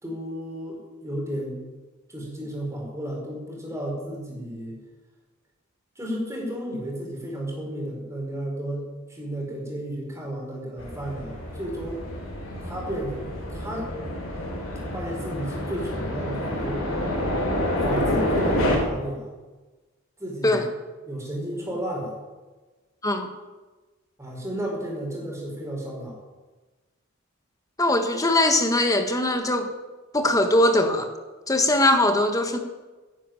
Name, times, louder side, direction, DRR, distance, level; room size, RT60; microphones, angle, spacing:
voice 1, 0.0-1.6 2.1-4.8 5.9-12.0 12.6-13.2 13.5-13.9 14.9-16.8 17.8-19.3 20.2-20.6 21.0-22.1 24.2-26.2, right 1 dB, 15° right, -2 dB, 4.9 m, -33 dB
sound 1, 10.8-18.8, left 1 dB, 70° left, 4.0 m, -28 dB
voice 2, 27.8-29.7 30.1-31.1 31.5-32.6, left 1 dB, 15° left, 6 dB, 1.4 m, -21 dB
11.0 x 10.0 x 9.2 m, 1.2 s
head